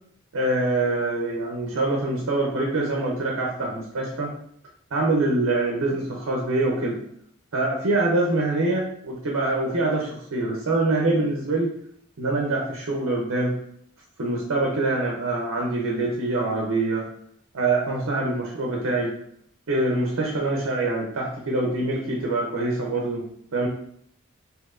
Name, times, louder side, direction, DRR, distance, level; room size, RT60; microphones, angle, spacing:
voice 1, 0.3-4.3 4.9-7.0 7.5-11.7 12.2-13.6 14.2-17.0 17.5-19.2 19.7-23.3 23.5-23.7, right 2 dB, 75° right, -2 dB, 0.7 m, -24 dB
4.4 x 2.7 x 2.5 m, 0.67 s
head